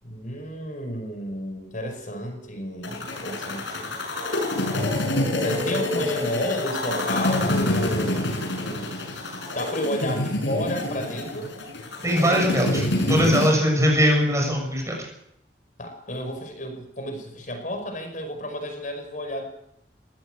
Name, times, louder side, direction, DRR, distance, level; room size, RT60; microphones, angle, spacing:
voice 1, 0.0-3.9 5.4-8.4 8.6-9.0 9.5-11.5 15.8-19.4, equal, 45° left, 5 dB, 5.5 m, -31 dB
sound 1, 2.8-13.5, left 1 dB, 85° left, 6.5 m, -27 dB
voice 2, 12.0-12.8 13.1-15.0, equal, 15° right, 1 dB, 6.9 m, -20 dB
21.5 x 16.5 x 8.0 m, 0.78 s
head